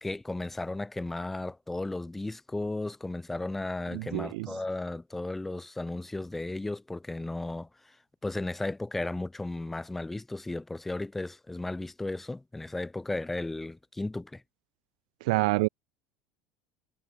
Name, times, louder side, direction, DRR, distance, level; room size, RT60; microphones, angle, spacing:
voice 1, 0.0-8.0 8.2-14.4, left 2 dB, 5° left, 0.5 m, -35 dB
voice 2, 3.9-4.5 15.3-15.7, right 24 dB, 85° right, 0.5 m, -27 dB
cardioid pair, 160°, 4 cm